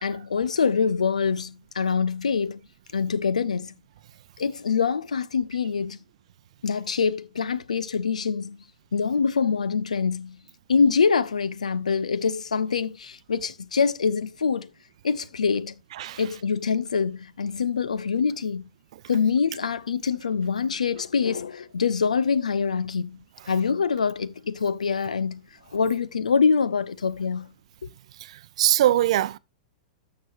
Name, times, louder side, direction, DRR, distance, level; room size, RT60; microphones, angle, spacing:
voice 1, 0.0-2.6 2.9-3.7 4.4-6.0 6.6-8.6 8.9-10.4 10.7-14.7 15.0-15.8 16.2-18.6 19.1-23.2 23.5-25.4 25.7-27.5 27.8-27.9, left 5 dB, 80° left, 0.6 m, -25 dB
voice 2, 28.2-29.4, right 13 dB, 60° right, 0.6 m, -22 dB
13.0 x 6.1 x 2.6 m
hypercardioid pair, 105°, 4 cm